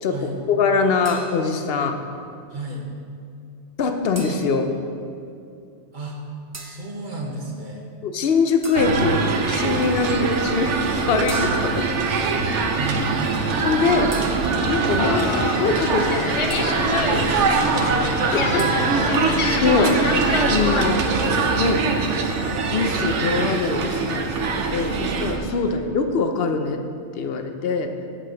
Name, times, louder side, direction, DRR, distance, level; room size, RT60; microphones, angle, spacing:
voice 1, 0.0-2.0 3.8-4.7 8.0-10.8 11.1-11.9 13.6-14.1 14.7-16.9 18.3-18.7 19.6-20.1 20.5-21.1 21.5-21.8 22.7-26.8 27.1-27.9, left 4 dB, 60° left, 6 dB, 0.8 m, -23 dB
sound 1, 1.0-1.7 4.1-4.8 6.5-6.9 8.6-9.2 11.3-11.9 14.1-14.8 16.5-17.0 18.6-18.9, right 2 dB, 20° right, 0.4 m, -39 dB
voice 2, 2.5-2.9 5.9-6.2 6.6-7.8 12.7-13.1 17.1-18.8 25.6-25.7, right 1 dB, 45° right, -1 dB, 1.1 m, -32 dB
sound 2, 8.8-25.4, right 4 dB, 85° right, 1.0 m, -23 dB
sound 3, 15.0-20.9, left 4 dB, 45° left, 0.4 m, -27 dB
8.3 x 7.6 x 3.9 m, 2.4 s
omnidirectional pair, 1.2 m